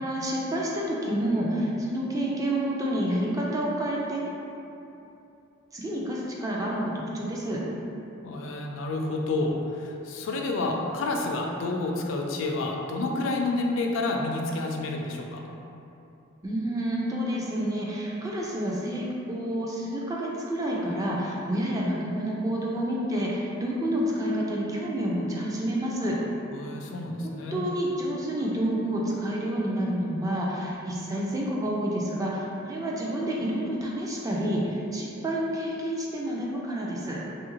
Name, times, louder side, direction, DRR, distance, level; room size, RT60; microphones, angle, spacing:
voice 1, 0.0-4.2 5.7-7.6 16.4-26.2 27.2-37.2, right 1 dB, 15° right, -4 dB, 0.3 m, -29 dB
voice 2, 8.2-15.4 26.5-27.6, left 2 dB, 70° left, 1 dB, 0.3 m, -29 dB
3.0 x 2.4 x 2.9 m, 2.8 s
head